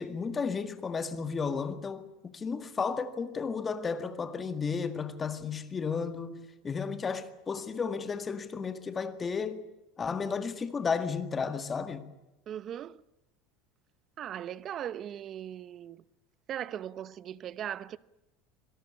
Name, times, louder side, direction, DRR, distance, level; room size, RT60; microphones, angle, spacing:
voice 1, 0.0-9.7 10.0-12.1, left 5 dB, 20° left, 1.9 m, -33 dB
voice 2, 12.5-13.0 14.2-16.0 16.5-18.0, right 10 dB, 35° right, 0.8 m, -38 dB
26.0 x 18.0 x 8.6 m
supercardioid pair, 145°, 0 cm